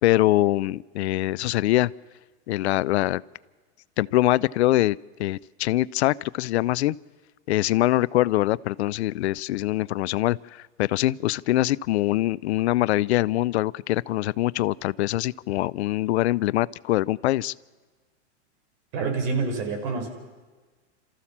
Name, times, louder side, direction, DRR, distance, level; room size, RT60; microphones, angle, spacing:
voice 1, 0.0-1.9 2.5-3.2 4.0-7.0 7.5-17.5, left 16 dB, 70° left, 20 dB, 0.6 m, -23 dB
voice 2, 18.9-20.1, right 4 dB, 55° right, 4 dB, 4.9 m, -27 dB
28.0 x 14.5 x 7.3 m, 1.3 s
hypercardioid pair, 130°, 34 cm